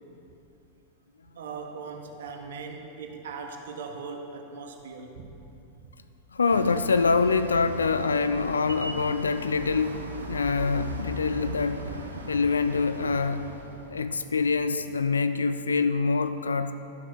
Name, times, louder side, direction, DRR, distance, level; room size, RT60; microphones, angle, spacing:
voice 1, 1.4-5.2, right 4 dB, 60° right, 4 dB, 1.1 m, -39 dB
voice 2, 6.3-10.0 10.3-11.8 12.3-13.5 13.9-16.7, left 4 dB, 75° left, 11 dB, 0.3 m, -25 dB
sound 1, 6.5-14.8, right 2 dB, 80° right, 0.9 m, -38 dB
12.0 x 6.2 x 6.0 m, 2.8 s
figure-of-eight pair, 90°, 0 cm